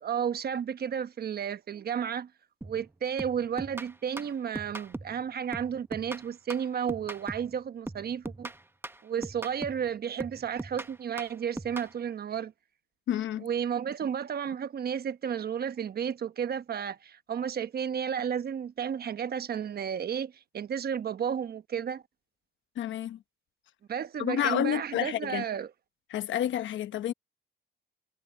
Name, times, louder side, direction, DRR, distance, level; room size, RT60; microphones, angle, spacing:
voice 1, 0.0-2.3 2.6-8.5 9.0-12.5 13.4-22.0 23.9-25.7, right 8 dB, 50° right, 1.1 m, -32 dB
sound 1, 2.6-2.9 3.2-5.2 5.5-7.6 7.9-9.9 10.2-11.9, right 2 dB, 10° right, 0.9 m, -40 dB
voice 2, 13.1-13.5 22.8-23.2 24.2-25.4 26.1-27.1, left 11 dB, 75° left, 1.1 m, -29 dB
cardioid pair, 90°, 20 cm